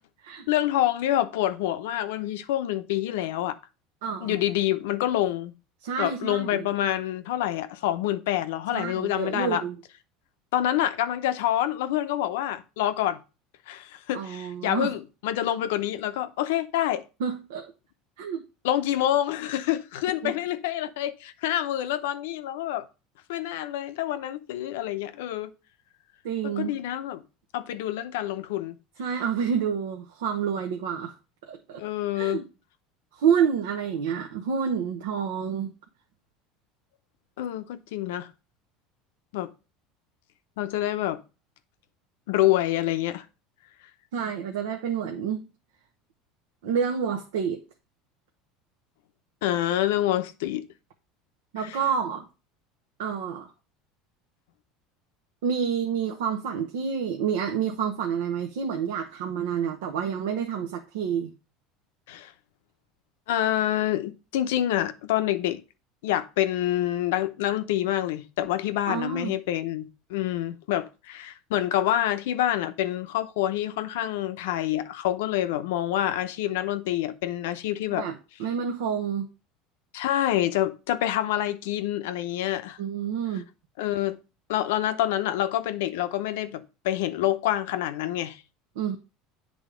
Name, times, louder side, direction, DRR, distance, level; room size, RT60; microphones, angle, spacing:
voice 1, 0.5-3.6 4.2-5.5 6.0-9.6 10.5-13.2 13.7-17.0 18.6-22.8 23.3-25.5 26.4-27.2 27.5-28.8 31.8-32.4 37.4-38.3 39.3-39.5 40.6-41.2 42.3-43.2 49.4-50.7 51.6-51.8 62.1-62.3 63.3-65.6 66.0-78.0 79.9-82.8 83.8-84.2 84.5-88.4, left 13 dB, 85° left, 0.6 m, -27 dB
voice 2, 4.0-4.4 5.8-6.7 8.7-9.8 14.1-14.9 17.2-17.7 18.2-18.4 20.2-20.3 26.2-26.7 29.0-31.1 31.4-31.8 32.1-32.4 33.1-35.7 44.1-45.5 46.6-47.6 51.5-52.3 53.0-53.5 55.4-61.3 68.9-69.4 77.9-79.3 82.8-83.5 88.8-89.0, right 7 dB, 85° right, 0.8 m, -28 dB
8.4 x 3.5 x 5.0 m
supercardioid pair, 115°, 0 cm